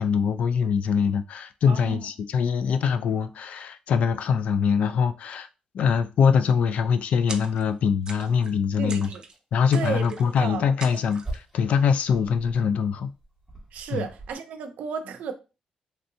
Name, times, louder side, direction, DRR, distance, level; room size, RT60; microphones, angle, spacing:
voice 1, 0.0-5.5 5.7-9.1 9.5-13.1 13.9-14.1, left 6 dB, 65° left, 0.3 m, -23 dB
voice 2, 1.7-2.1 8.8-9.2 9.7-10.0 10.4-10.7 13.7-15.3, right 6 dB, 90° right, 0.5 m, -32 dB
sound 1, 6.9-7.0 7.5-7.6 8.0-8.5 9.2-9.4 9.8-10.0 10.6-14.3, right 2 dB, 10° left, 1.2 m, -42 dB
sound 2, 7.3-7.8 8.0-8.6 8.9-9.4 9.7-10.4 10.8-11.4, right 4 dB, 35° right, 0.4 m, -41 dB
3.2 x 2.7 x 2.6 m
cardioid pair, 140°, 2 cm